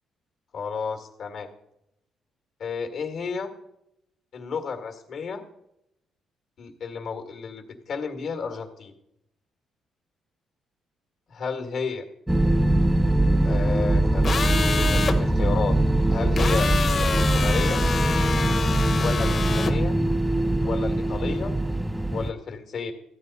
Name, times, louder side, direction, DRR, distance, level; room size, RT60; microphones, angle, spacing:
voice 1, 0.5-1.5 2.6-3.5 4.3-5.4 6.6-8.9 11.3-12.0 13.4-15.8 16.1-16.7 17.0-17.8 19.0-19.9 20.6-21.5 22.1-22.9, left 5 dB, 65° left, 6 dB, 1.6 m, -32 dB
sound 1, 12.3-22.3, right 1 dB, 10° right, 0.5 m, -22 dB
sound 2, 14.2-15.2 16.4-19.7, left 5 dB, 45° left, 1.2 m, -27 dB
14.0 x 9.4 x 4.0 m, 0.83 s
cardioid pair, 90°, 0 cm